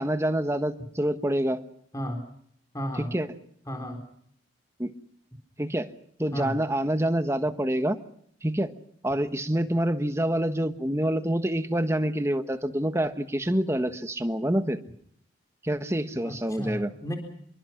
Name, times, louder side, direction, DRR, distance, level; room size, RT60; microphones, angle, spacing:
voice 1, 0.0-1.6 3.0-3.4 4.8-4.9 5.6-5.9 6.2-8.0 8.4-8.7 9.0-14.8 15.6-16.9, right 1 dB, 15° right, 9 dB, 1.3 m, -27 dB
voice 2, 1.9-2.2 2.7-3.1 3.7-4.0 6.3-6.6 16.2-17.2, equal, 15° left, 3 dB, 4.1 m, -33 dB
27.5 x 23.0 x 5.9 m, 0.65 s
head